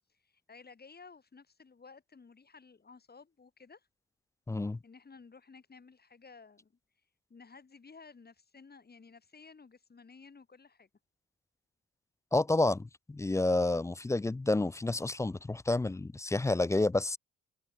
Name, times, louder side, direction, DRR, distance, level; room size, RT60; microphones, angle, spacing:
voice 1, 0.0-3.9 4.8-6.7 7.3-10.9, left 4 dB, 30° left, 7.0 m, -55 dB
voice 2, 4.5-4.8 12.3-17.2, left 2 dB, 10° left, 0.4 m, -29 dB
open air
cardioid pair, 90°, 30 cm